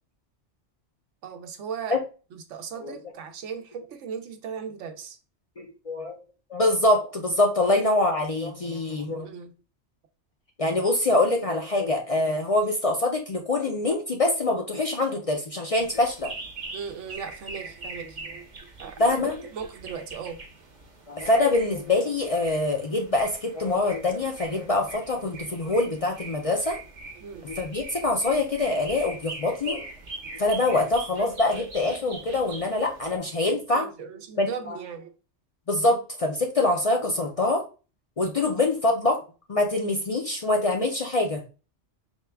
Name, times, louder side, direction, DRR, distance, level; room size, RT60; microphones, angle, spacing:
voice 1, 1.2-2.0 2.3-5.2 9.0-9.5 16.7-18.5 18.8-20.4 27.2-27.5 30.2-30.3 33.7-35.2 38.4-38.5, right 6 dB, 85° right, 6 dB, 1.0 m, -38 dB
voice 2, 5.6-6.2 6.5-9.3 10.6-16.3 19.0-19.4 21.1-26.8 27.4-29.8 30.3-33.9 34.4-34.8 35.7-37.6 38.2-39.2 39.5-41.4, left 2 dB, 50° left, 2 dB, 0.4 m, -24 dB
sound 1, 15.7-33.2, right 3 dB, 45° right, 0.9 m, -42 dB
4.5 x 2.2 x 3.3 m, 0.34 s
omnidirectional pair, 1.2 m